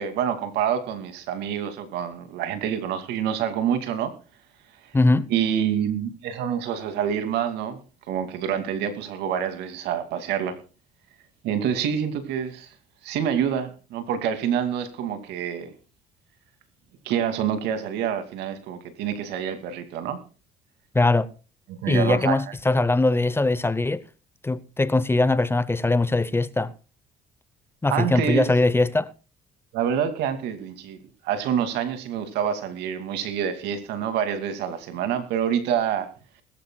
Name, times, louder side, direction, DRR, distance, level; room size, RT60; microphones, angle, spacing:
voice 1, 0.0-4.1 5.3-7.8 8.1-10.6 11.4-12.7 13.0-15.7 17.0-20.2 21.7-22.4 27.9-28.5 29.7-31.0 31.2-36.1, right 8 dB, 85° right, 2.5 m, -27 dB
voice 2, 4.9-5.3 20.9-21.3 21.9-24.0 24.4-26.7 27.8-29.1, left 2 dB, 15° left, 0.8 m, -21 dB
21.0 x 14.0 x 2.3 m
cardioid pair, 110°, 17 cm